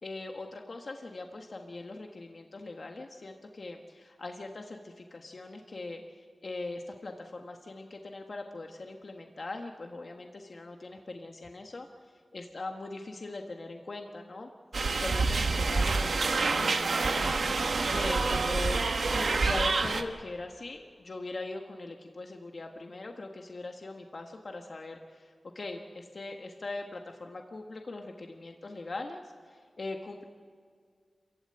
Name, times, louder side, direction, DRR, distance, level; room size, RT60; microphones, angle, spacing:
voice 1, 0.0-11.9 12.3-14.5 15.0-17.4 17.9-30.2, left 2 dB, 55° left, 3 dB, 1.5 m, -41 dB
sound 1, 14.7-20.0, right 3 dB, 75° right, 1.4 m, -27 dB
27.0 x 15.5 x 8.8 m, 2.1 s
wide cardioid pair, 70°, 0 cm